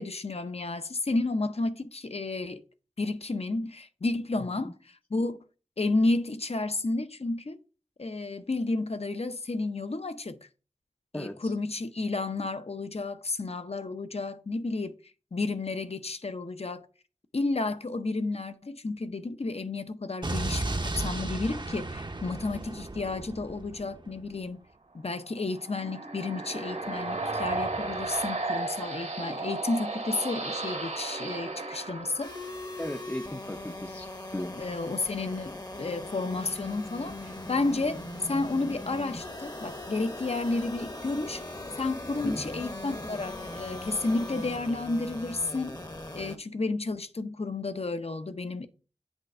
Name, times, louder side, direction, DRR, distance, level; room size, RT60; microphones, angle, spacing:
voice 1, 0.0-2.6 3.0-4.7 5.1-5.4 5.8-7.6 8.0-10.5 11.1-14.9 15.3-16.9 17.3-24.6 24.9-32.3 34.6-41.4 41.8-45.8 46.1-48.7, left 3 dB, 60° left, 0.6 m, -31 dB
voice 2, 4.4-4.7 11.1-11.5 32.8-34.6 42.2-42.5, left 1 dB, 15° left, 0.5 m, -37 dB
Explosion, 20.2-24.3, right 2 dB, 40° right, 0.6 m, -34 dB
sound 1, 25.3-32.9, right 2 dB, 85° right, 1.7 m, -34 dB
sound 2, 32.2-46.4, left 1 dB, 35° left, 0.9 m, -40 dB
8.1 x 3.2 x 5.4 m
wide cardioid pair, 50°, 12 cm